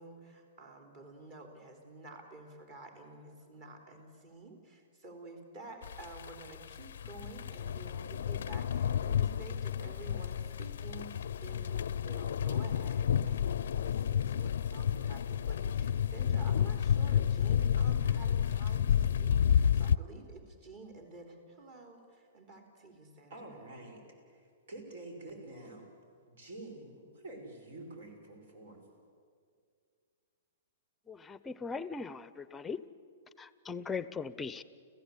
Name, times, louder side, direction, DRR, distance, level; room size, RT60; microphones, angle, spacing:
voice 1, 0.0-23.6, right 2 dB, 40° right, 4 dB, 3.8 m, -51 dB
sound 1, 5.8-20.0, left 8 dB, 75° left, 0.5 m, -30 dB
voice 2, 23.3-25.9 26.3-28.8, right 2 dB, 70° right, 4 dB, 6.1 m, -48 dB
voice 3, 31.1-32.8 33.4-34.6, left 5 dB, 10° left, 16 dB, 0.7 m, -39 dB
30.0 x 15.5 x 8.5 m, 2.2 s
hypercardioid pair, 150°, 0 cm